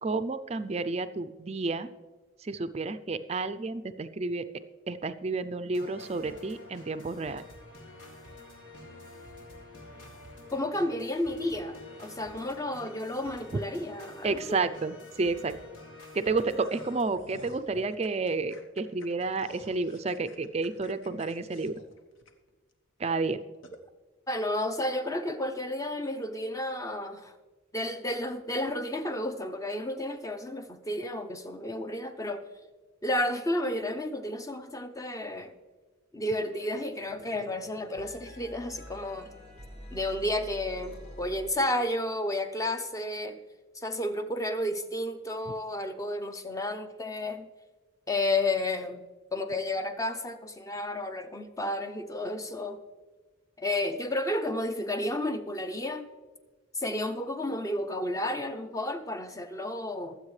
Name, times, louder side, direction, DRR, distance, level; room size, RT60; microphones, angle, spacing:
voice 1, 0.0-1.9 2.4-4.5 4.9-7.4 14.2-15.6 16.1-21.8 23.0-23.4, right 3 dB, 30° right, 11 dB, 0.4 m, -31 dB
sound 1, 5.7-17.0, left 2 dB, 80° left, 3.1 m, -48 dB
voice 2, 10.5-14.6 24.3-27.4 27.7-32.4 33.0-35.5 36.1-39.3 39.9-43.4 43.7-47.5 48.1-49.0 49.3-52.8 53.6-56.1 56.7-60.2, left 1 dB, 15° left, 8 dB, 0.6 m, -32 dB
sound 2, 16.4-22.7 23.1-23.2 23.6-23.8, left 2 dB, 65° left, 1.2 m, -52 dB
sound 3, 36.3-36.7 36.9-41.9, equal, 45° left, 4.4 m, -47 dB
22.5 x 7.9 x 3.2 m, 1.3 s
head